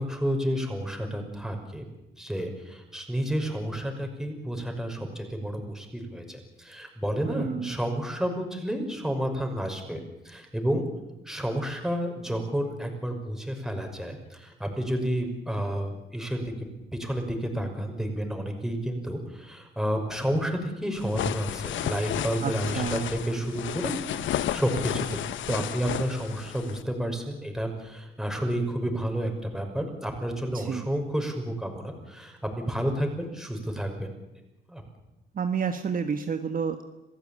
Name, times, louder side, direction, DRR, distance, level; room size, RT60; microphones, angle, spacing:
voice 1, 0.0-1.9 2.2-10.8 11.3-16.7 16.9-25.2 25.5-34.1 34.7-34.8, equal, ahead, 4 dB, 5.8 m, -30 dB
voice 2, 7.2-7.8 22.4-23.1 30.5-30.8 35.3-36.8, right 6 dB, 45° right, 7 dB, 1.5 m, -30 dB
sound 1, 20.9-26.8, left 11 dB, 75° left, 1.0 m, -32 dB
27.0 x 15.5 x 8.8 m, 0.98 s
cardioid pair, 90°, 20 cm